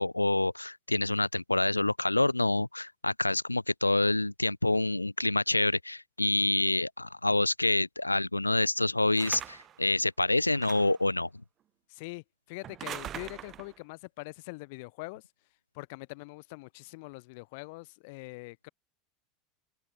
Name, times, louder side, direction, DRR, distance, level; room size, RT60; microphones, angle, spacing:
voice 1, 0.0-11.3, left 2 dB, 90° left, 0.5 m, -27 dB
sound 1, 9.2-9.8 10.5-11.1 12.6-13.8, right 11 dB, 35° right, 0.9 m, -42 dB
voice 2, 11.9-15.2 15.7-18.7, left 27 dB, 55° left, 1.5 m, -43 dB
open air
figure-of-eight pair, 75°, 0 cm